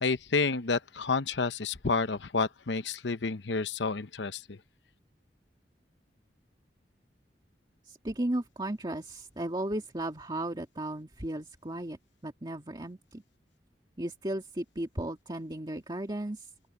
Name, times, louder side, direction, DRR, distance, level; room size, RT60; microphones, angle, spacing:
voice 1, 0.0-4.6, left 4 dB, 85° left, 0.9 m, -30 dB
voice 2, 7.8-13.2 14.0-16.5, right 1 dB, 25° right, 2.0 m, -35 dB
open air
head